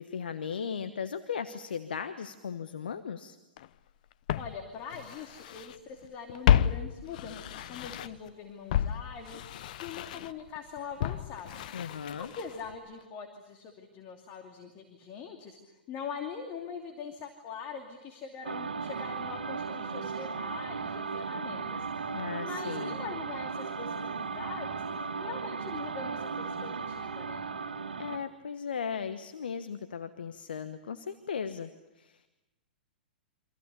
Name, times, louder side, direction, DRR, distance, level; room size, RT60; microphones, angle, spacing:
voice 1, 0.0-3.4 11.7-12.3 22.1-23.0 28.0-31.7 31.9-32.3, left 6 dB, 70° left, 10 dB, 1.2 m, -37 dB
Walk footsteps, 3.6-3.7 4.3-5.8 6.0-8.3 8.7-12.7 13.0-13.1, left 10 dB, 50° left, 0.8 m, -31 dB
voice 2, 4.4-11.5 12.1-24.8 25.2-27.4, left 6 dB, 35° left, 4 dB, 2.7 m, -43 dB
sound 1, 18.4-28.3, right 5 dB, 75° right, 1.8 m, -36 dB
28.5 x 25.5 x 7.0 m, 1.0 s
figure-of-eight pair, 105°, 5 cm